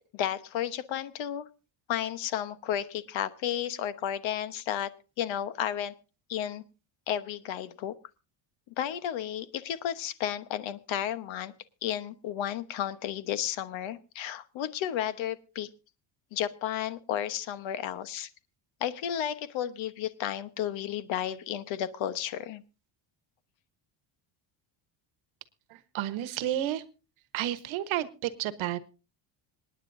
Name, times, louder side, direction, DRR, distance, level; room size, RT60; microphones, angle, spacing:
voice 1, 0.1-1.5 1.9-4.9 5.2-5.9 6.3-6.6 7.1-7.9 8.8-11.5 11.8-15.7 16.3-18.3 18.8-22.6, left 10 dB, 65° left, 13 dB, 1.2 m, -32 dB
voice 2, 25.7-26.8 27.3-28.8, right 12 dB, 70° right, 12 dB, 1.2 m, -31 dB
26.5 x 9.8 x 2.6 m, 0.33 s
cardioid pair, 175°, 49 cm